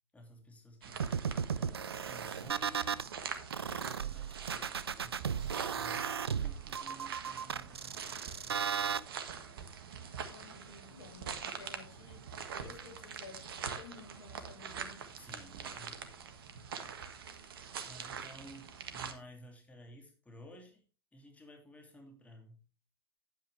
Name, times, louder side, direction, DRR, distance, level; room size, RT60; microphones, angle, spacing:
voice 1, 0.1-2.9 3.6-8.6 15.2-16.1 17.9-20.8 21.1-22.6, equal, 10° left, 3 dB, 2.7 m, -55 dB
sound 1, 0.8-19.1, right 7 dB, 70° right, 1.6 m, -45 dB
sound 2, 1.0-3.1 3.5-9.0, right 7 dB, 85° right, 0.5 m, -35 dB
voice 2, 10.3-15.1, left 5 dB, 70° left, 3 dB, 3.4 m, -54 dB
9.9 x 9.1 x 3.4 m, 0.35 s
hypercardioid pair, 95°, 13 cm